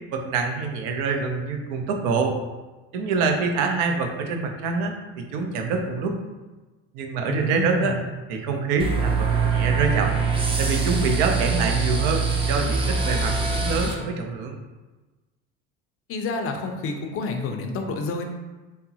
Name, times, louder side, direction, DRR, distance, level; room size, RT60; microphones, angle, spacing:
voice 1, 0.1-2.3 2.9-6.2 6.9-7.9 8.3-10.2 10.6-14.6, right 4 dB, 75° right, 3 dB, 0.6 m, -25 dB
voice 2, 7.3-8.0 16.1-18.2, left 3 dB, 45° left, 4 dB, 0.4 m, -29 dB
sound 1, 8.8-13.9, right 5 dB, 15° right, 0.4 m, -23 dB
3.5 x 2.0 x 2.7 m, 1.2 s
supercardioid pair, 90°, 33 cm